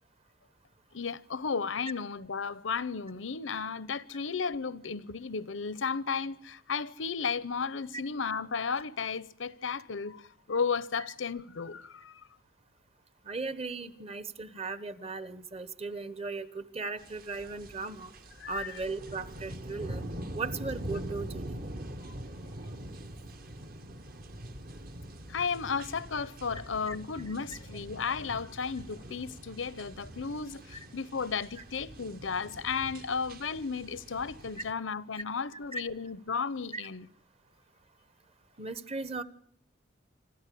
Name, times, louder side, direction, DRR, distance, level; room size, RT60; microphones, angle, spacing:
voice 1, 0.9-12.2 18.4-18.7 22.0-22.1 25.3-37.1, left 5 dB, 85° left, 0.8 m, -34 dB
voice 2, 13.2-18.1 18.5-20.0 20.3-21.6 26.9-27.0 30.7-30.8 35.7-35.8 36.7-36.9 38.6-39.2, right 3 dB, 30° right, 1.0 m, -37 dB
sound 1, 17.0-34.7, right 1 dB, 50° right, 1.3 m, -44 dB
26.0 x 13.5 x 8.4 m
head